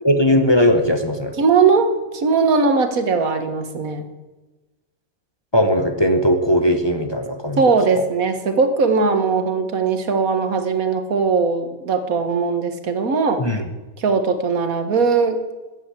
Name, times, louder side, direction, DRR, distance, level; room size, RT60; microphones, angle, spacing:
voice 1, 0.0-1.4 5.5-7.6 7.9-8.0 13.4-13.6, equal, 20° left, 6 dB, 1.0 m, -18 dB
voice 2, 1.4-4.0 7.6-13.4 14.0-15.4, right 4 dB, 90° right, 8 dB, 1.8 m, -19 dB
14.0 x 9.3 x 8.2 m, 1.2 s
omnidirectional pair, 1.4 m